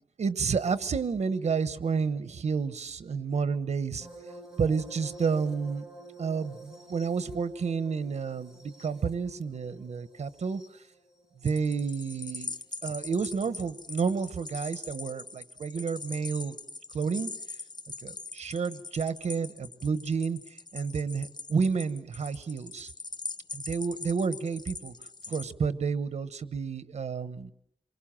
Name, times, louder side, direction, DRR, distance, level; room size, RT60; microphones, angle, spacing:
voice 1, 0.2-4.1 4.6-5.9 6.2-10.6 11.4-12.5 12.8-16.5 16.9-17.3 18.0-20.4 20.7-22.9 23.5-24.9 25.3-27.5, right 5 dB, 90° right, 13 dB, 1.1 m, -30 dB
sound 1, 4.0-12.7 14.0-14.3 16.0-16.1, right 1 dB, 5° right, 3.9 m, -50 dB
sound 2, 11.4-25.4, left 3 dB, 40° left, 1.0 m, -42 dB
27.5 x 23.5 x 7.5 m, 0.73 s
wide cardioid pair, 140°, 11 cm